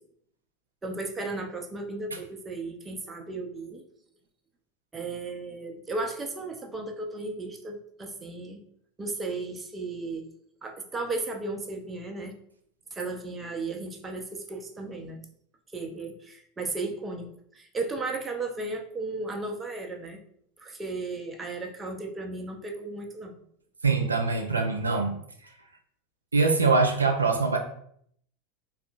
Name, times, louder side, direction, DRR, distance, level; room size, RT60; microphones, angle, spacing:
voice 1, 0.8-3.8 4.9-8.6 9.0-10.3 10.6-12.3 12.9-15.2 15.7-20.2 20.6-23.3, right 3 dB, 20° right, 3 dB, 0.5 m, -35 dB
voice 2, 23.8-25.2 25.4-25.5 26.3-27.6, right 4 dB, 90° right, 4 dB, 0.3 m, -23 dB
3.5 x 2.3 x 2.4 m, 0.66 s
figure-of-eight pair, 85°, 0 cm